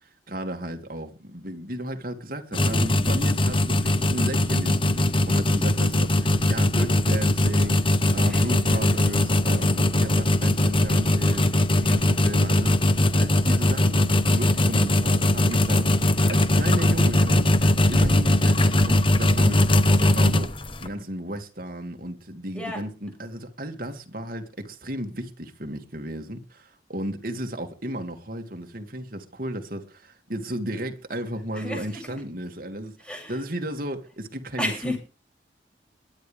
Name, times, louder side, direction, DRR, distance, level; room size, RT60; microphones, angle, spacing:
voice 1, 0.0-12.9 13.1-16.0 16.3-17.5 17.9-33.0 33.3-35.0, right 1 dB, 50° right, 2.8 m, -34 dB
sound 1, 2.5-20.9, left 1 dB, 30° left, 1.2 m, -21 dB
voice 2, 8.2-8.7 22.5-22.8 31.6-32.2 33.1-33.3 34.6-35.0, left 1 dB, 5° left, 7.6 m, -32 dB
22.0 x 10.5 x 3.7 m
head